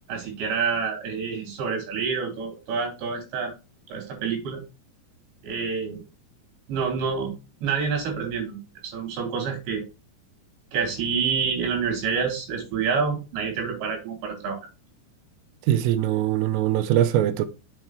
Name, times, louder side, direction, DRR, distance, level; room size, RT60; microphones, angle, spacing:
voice 1, 0.1-3.5 3.9-4.6 5.4-6.0 6.7-7.3 7.6-9.8 10.7-14.6, right 6 dB, 60° right, 6.1 m, -27 dB
voice 2, 15.7-17.5, right 12 dB, 85° right, 3.5 m, -22 dB
8.5 x 7.9 x 3.2 m
omnidirectional pair, 5.9 m